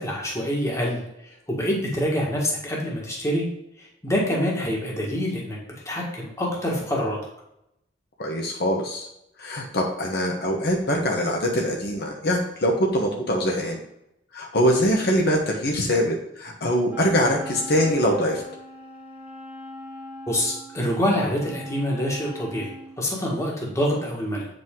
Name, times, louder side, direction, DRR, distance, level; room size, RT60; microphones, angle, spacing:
voice 1, 0.0-3.5 4.0-5.6 5.8-7.2 20.3-24.5, equal, 15° left, -3 dB, 1.6 m, -26 dB
voice 2, 8.2-9.1 9.4-13.8 14.3-18.4, equal, 60° left, 0 dB, 1.1 m, -23 dB
Wind instrument woodwind instrument, 16.9-23.0, left 1 dB, 10° right, 1.1 m, -40 dB
7.9 x 5.2 x 3.7 m, 0.81 s
head